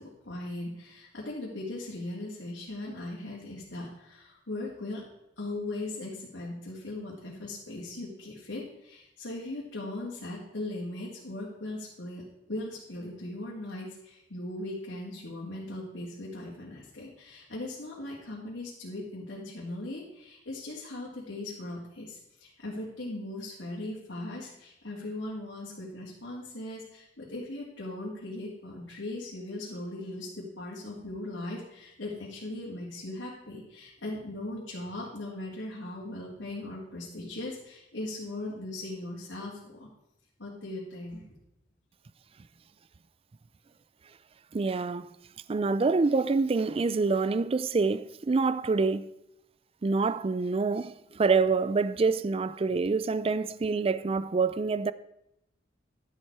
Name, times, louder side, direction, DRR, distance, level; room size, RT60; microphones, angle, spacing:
voice 1, 0.0-5.0 5.4-39.9 40.4-41.2, left 2 dB, 75° left, 2.4 m, -39 dB
voice 2, 44.5-45.1 45.5-49.1 49.8-54.9, right 4 dB, 30° right, 0.4 m, -26 dB
11.5 x 7.4 x 4.7 m
head